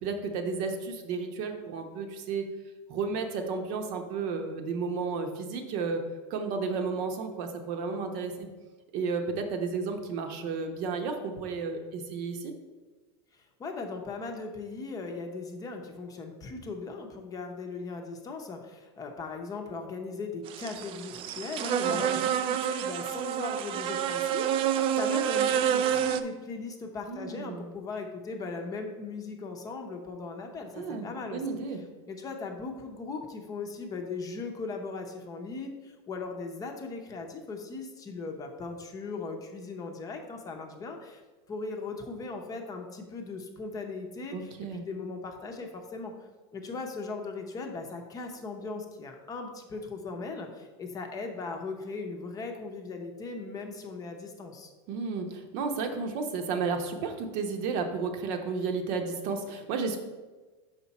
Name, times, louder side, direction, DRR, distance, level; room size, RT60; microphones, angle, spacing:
voice 1, 0.0-2.5 2.9-6.0 6.3-8.5 8.9-12.5 21.8-22.2 27.1-27.7 30.7-31.8 44.3-44.8 54.9-60.0, right 4 dB, 55° right, 5 dB, 0.9 m, -32 dB
voice 2, 13.3-31.4 32.1-41.2 41.5-54.7, left 3 dB, 25° left, 3 dB, 0.7 m, -38 dB
sound 1, 20.5-26.2, right 9 dB, 40° right, 0.4 m, -28 dB
5.6 x 5.1 x 4.1 m, 1.3 s
supercardioid pair, 135°, 15 cm